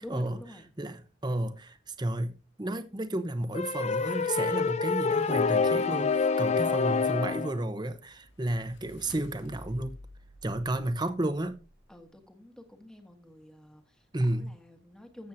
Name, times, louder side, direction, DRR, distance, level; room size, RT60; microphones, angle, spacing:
voice 1, 0.0-0.7 11.9-14.1 14.3-15.3, left 1 dB, 5° left, 1.4 m, -48 dB
voice 2, 0.8-10.0 10.4-11.6 14.1-14.5, right 1 dB, 25° right, 0.9 m, -32 dB
sound 1, 3.5-7.6, left 5 dB, 35° left, 0.5 m, -27 dB
sound 2, 8.0-11.8, equal, 80° left, 1.3 m, -51 dB
14.5 x 7.3 x 2.7 m
head